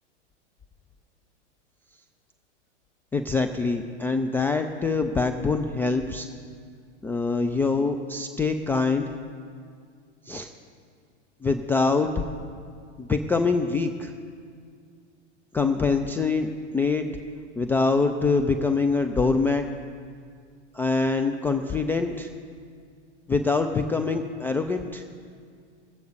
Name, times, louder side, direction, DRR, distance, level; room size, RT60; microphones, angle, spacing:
voice 1, 3.1-6.3 7.0-9.1 10.3-10.5 11.4-12.2 13.0-14.1 15.5-17.1 17.6-19.6 20.7-22.3 23.3-25.0, left 4 dB, 5° left, 6 dB, 0.3 m, -24 dB
21.0 x 8.2 x 4.1 m, 2.2 s
hypercardioid pair, 105°, 36 cm